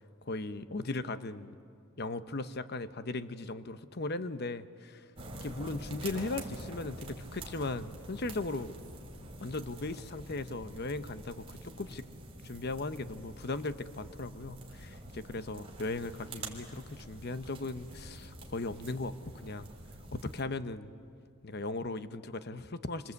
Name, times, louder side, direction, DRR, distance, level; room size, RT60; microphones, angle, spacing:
voice 1, 0.0-1.6 2.0-5.1 5.3-8.7 9.4-12.1 12.4-19.7 20.1-20.9 21.4-23.1, left 2 dB, 50° left, 12 dB, 0.9 m, -38 dB
sound 1, 5.2-20.4, right 2 dB, 25° right, 3.4 m, -47 dB
28.5 x 25.5 x 8.2 m, 2.4 s
head